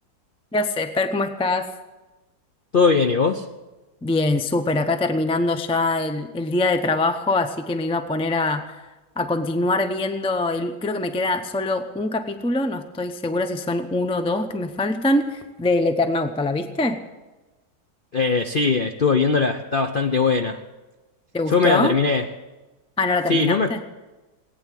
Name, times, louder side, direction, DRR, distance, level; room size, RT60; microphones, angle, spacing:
voice 1, 0.5-1.7 4.0-8.8 9.2-17.0 21.3-22.0 23.0-23.8, left 2 dB, 10° left, 8 dB, 0.3 m, -23 dB
voice 2, 2.7-3.4 18.1-20.6 21.5-22.3 23.3-23.7, left 4 dB, 60° left, 6 dB, 0.5 m, -20 dB
18.5 x 9.6 x 7.6 m, 1.2 s
omnidirectional pair, 1.9 m